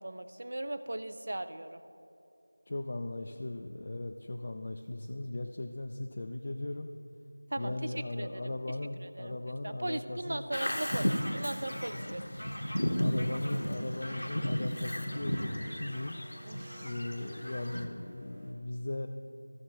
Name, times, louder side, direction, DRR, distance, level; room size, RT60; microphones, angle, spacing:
voice 1, 0.0-1.8 7.5-8.6 9.0-9.4 9.6-12.2 16.5-16.9, right 1 dB, 50° right, 12 dB, 0.4 m, -38 dB
voice 2, 2.7-6.9 7.6-10.5 11.9-12.4 12.7-16.2 16.8-19.1, left 2 dB, 35° left, 4 dB, 0.3 m, -38 dB
Bird vocalization bird call bird song, 10.5-17.9, equal, 70° left, 0.9 m, -34 dB
sound 1, 12.7-18.5, equal, 10° right, 0.9 m, -53 dB
14.0 x 6.5 x 3.0 m, 2.8 s
figure-of-eight pair, 170°, 0 cm